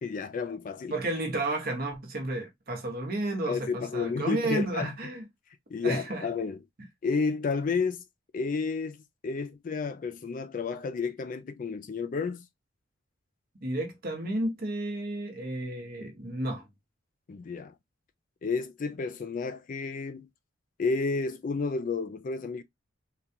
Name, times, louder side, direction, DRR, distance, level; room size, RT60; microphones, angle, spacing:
voice 1, 0.0-0.9 3.5-4.9 5.7-6.6 7.0-8.0 8.3-9.0 9.2-12.4 17.3-17.7 18.4-20.3 20.8-22.6, left 4 dB, 40° left, 0.3 m, -31 dB
voice 2, 0.9-5.3 5.8-6.2 13.6-16.7, right 2 dB, 50° right, 1.1 m, -32 dB
3.8 x 2.3 x 2.7 m
head